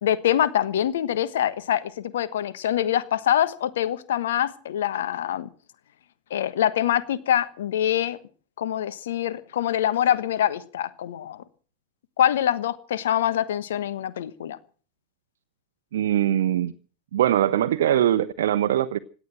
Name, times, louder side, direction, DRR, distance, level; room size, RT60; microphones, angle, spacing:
voice 1, 0.0-5.5 6.3-8.2 8.6-11.4 12.2-14.6, left 11 dB, 60° left, 1.3 m, -24 dB
voice 2, 15.9-16.7 17.1-19.0, right 11 dB, 60° right, 0.8 m, -22 dB
17.5 x 11.0 x 7.7 m
figure-of-eight pair, 90°, 0 cm